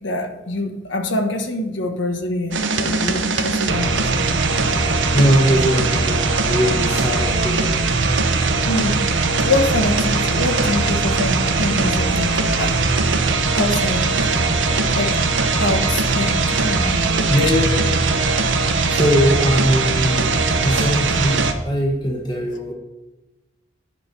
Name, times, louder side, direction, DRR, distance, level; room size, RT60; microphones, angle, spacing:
voice 1, 0.0-4.3 8.7-9.0 9.4-12.7 13.5-14.1 14.4-15.2 15.6-17.0 17.4-17.5, left 2 dB, 75° left, 5 dB, 1.3 m, -25 dB
sound 1, 2.5-21.5, right 3 dB, 75° right, 0.9 m, -20 dB
voice 2, 5.1-7.8 17.3-18.1 18.9-22.7, equal, 20° left, -1 dB, 1.2 m, -20 dB
9.8 x 5.6 x 6.6 m, 1.1 s
head